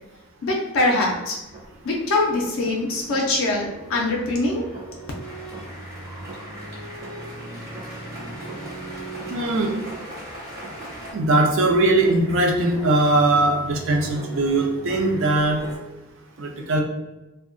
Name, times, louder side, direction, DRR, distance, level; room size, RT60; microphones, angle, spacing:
voice 1, 0.4-1.4 1.8-4.7, left 2 dB, 65° left, -1 dB, 0.4 m, -23 dB
sound 1, 0.7-15.8, right 2 dB, 20° right, 0.6 m, -40 dB
sound 2, 5.2-11.1, equal, 45° right, 1.0 m, -40 dB
voice 2, 9.3-9.7 11.1-15.6 16.4-16.8, right 2 dB, 60° right, 1 dB, 0.5 m, -20 dB
2.7 x 2.1 x 2.5 m, 1.0 s
head